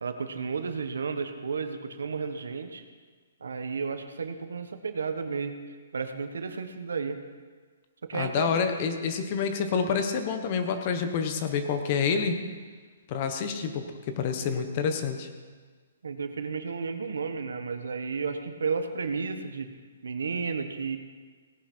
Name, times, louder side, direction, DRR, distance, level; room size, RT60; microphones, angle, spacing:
voice 1, 0.0-2.8 3.4-5.6 5.9-7.2 8.0-8.5 16.0-19.7 20.0-21.0, right 5 dB, 85° right, 8 dB, 1.3 m, -32 dB
voice 2, 8.1-12.4 13.1-15.3, left 6 dB, 35° left, 7 dB, 1.2 m, -28 dB
18.0 x 10.0 x 4.5 m, 1.5 s
hypercardioid pair, 160°, 0 cm